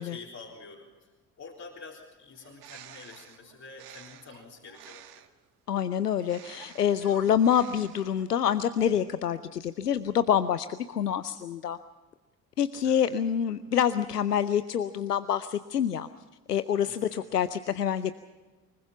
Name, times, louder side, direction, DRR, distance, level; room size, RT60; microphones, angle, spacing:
voice 1, 0.0-5.2 12.8-13.0 16.8-17.3, left 4 dB, 35° left, -3 dB, 3.8 m, -48 dB
Bird, 2.3-5.4 6.2-8.3, right 12 dB, 55° right, 1.8 m, -51 dB
voice 2, 5.7-11.8 12.6-16.1 16.5-18.1, left 9 dB, 85° left, 14 dB, 0.6 m, -26 dB
24.5 x 21.5 x 5.7 m, 1.2 s
figure-of-eight pair, 50°, 46 cm